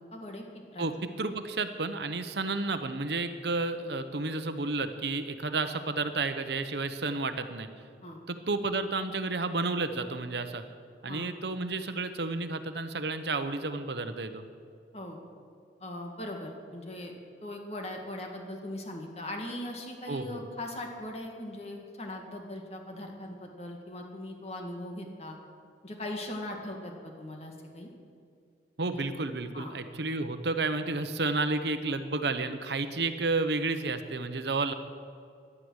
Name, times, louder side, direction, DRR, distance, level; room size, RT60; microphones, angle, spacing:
voice 1, 0.1-0.4 0.7-0.9 8.0-8.2 11.1-11.3 14.9-15.2 15.8-17.1 17.4-25.4 25.8-27.9 28.9-29.0 29.5-29.7, left 1 dB, 35° left, 2 dB, 2.1 m, -40 dB
voice 2, 0.8-7.7 8.3-10.6 11.0-14.4 20.1-20.5 28.8-34.7, right 3 dB, 70° right, 9 dB, 1.0 m, -31 dB
17.0 x 11.5 x 6.5 m, 2.4 s
head